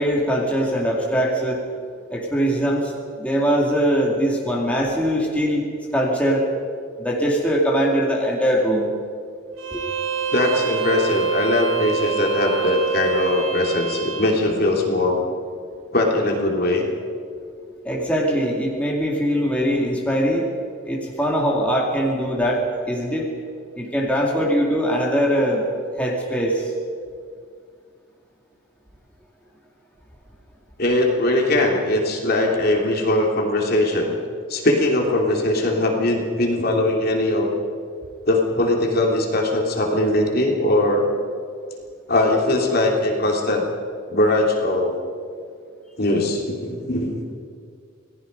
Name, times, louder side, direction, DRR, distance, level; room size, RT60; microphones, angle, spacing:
voice 1, 0.0-1.6 2.1-2.9 3.2-6.4 7.0-8.9 9.7-9.8 17.8-20.5 20.8-23.3 23.8-25.7 26.0-26.7, equal, 5° left, -3 dB, 2.6 m, -21 dB
Bowed string instrument, 9.6-14.4, right 8 dB, 85° right, 3.0 m, -26 dB
voice 2, 10.3-15.2 15.9-16.9 30.8-34.1 34.5-37.5 38.3-41.1 42.1-43.7 44.1-44.9 46.0-47.2, left 1 dB, 50° left, 0 dB, 3.1 m, -20 dB
27.5 x 19.0 x 5.4 m, 2.2 s
head